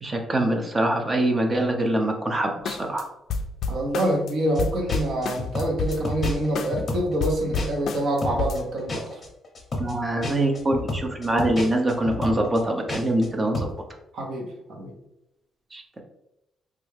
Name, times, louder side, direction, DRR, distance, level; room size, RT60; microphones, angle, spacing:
voice 1, 0.0-3.0 9.8-13.7 15.7-16.0, right 1 dB, 20° right, 3 dB, 0.5 m, -24 dB
sound 1, 2.7-3.0 3.3-4.3 4.6-6.9 7.2-8.6, left 4 dB, 65° left, 0.3 m, -29 dB
voice 2, 3.7-9.2 14.1-14.9, right 1 dB, 60° right, 1 dB, 0.8 m, -26 dB
sound 2, 4.5-4.6 4.9-7.9 8.2-13.3 13.5-13.8, left 2 dB, 30° left, 0.7 m, -31 dB
3.2 x 2.3 x 3.2 m, 0.87 s
cardioid pair, 145°, 0 cm